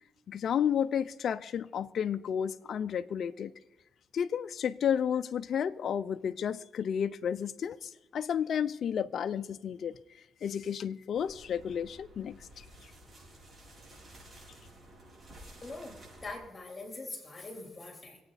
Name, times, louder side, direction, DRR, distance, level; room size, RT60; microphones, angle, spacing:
voice 1, 0.3-3.5 4.1-9.9 10.4-12.4, left 8 dB, 65° left, 0.5 m, -32 dB
sound 1, 11.1-16.4, right 1 dB, 35° right, 6.6 m, -53 dB
voice 2, 15.6-18.2, left 2 dB, 25° left, 3.7 m, -43 dB
25.0 x 9.0 x 4.1 m
cardioid pair, 75°, 0 cm